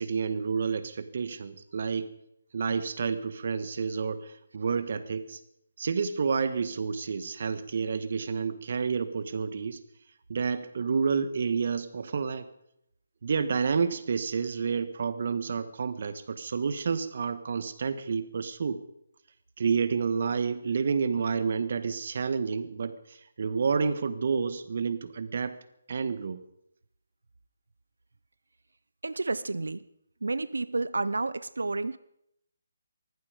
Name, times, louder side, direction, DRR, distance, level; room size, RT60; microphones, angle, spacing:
voice 1, 0.0-2.1 2.5-5.4 5.8-9.8 10.3-12.5 13.2-18.8 19.6-25.6 25.9-26.4, right 5 dB, 55° right, 12 dB, 1.5 m, -29 dB
voice 2, 29.0-29.8 30.2-32.0, right 3 dB, 80° right, 17 dB, 0.7 m, -30 dB
19.0 x 14.5 x 5.1 m, 0.76 s
figure-of-eight pair, 155°, 0 cm